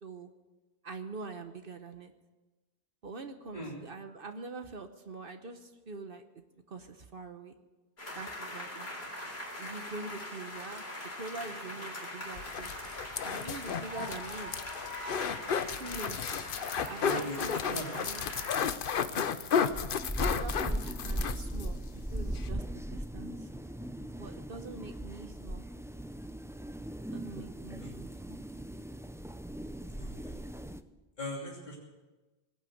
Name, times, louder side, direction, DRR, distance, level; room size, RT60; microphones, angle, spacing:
voice 1, 0.8-2.1 3.0-6.2 6.7-7.5 8.1-9.1 9.6-12.7 13.2-14.5 15.8-16.2 16.8-18.2 20.2-23.5 23.8-25.7 27.1-28.4, right 3 dB, 60° right, 7 dB, 1.2 m, -44 dB
sound 1, 8.0-18.6, left 1 dB, 85° left, 3.9 m, -42 dB
sound 2, 12.4-21.7 22.0-22.1 22.3-22.5, left 7 dB, 60° left, 0.9 m, -33 dB
voice 2, 17.0-18.0 18.3-18.4 19.2-19.5 27.8-28.0 29.9-30.3 31.2-31.7, left 1 dB, 45° left, -5 dB, 3.1 m, -40 dB
sound 3, 19.7-30.8, right 1 dB, 5° right, 0.3 m, -38 dB
19.0 x 9.0 x 7.8 m, 1.2 s
omnidirectional pair, 1.0 m